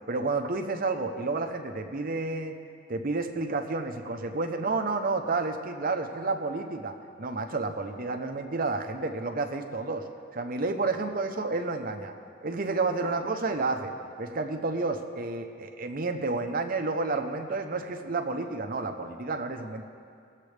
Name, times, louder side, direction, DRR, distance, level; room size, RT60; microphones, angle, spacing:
voice 1, 0.1-2.5 2.9-10.0 10.3-12.1 12.4-13.9 14.2-19.8, right 3 dB, 45° right, 5 dB, 0.8 m, -30 dB
22.5 x 7.5 x 3.4 m, 2.4 s
head